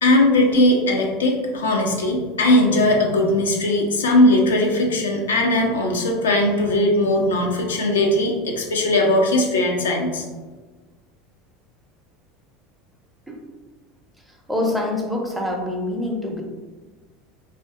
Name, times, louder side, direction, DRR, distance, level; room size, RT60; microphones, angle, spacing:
voice 1, 0.0-10.2, left 1 dB, 75° left, 1 dB, 0.3 m, -19 dB
voice 2, 14.5-16.4, left 1 dB, 5° right, 0 dB, 0.5 m, -25 dB
2.5 x 2.2 x 2.3 m, 1.3 s
figure-of-eight pair, 75°, 0 cm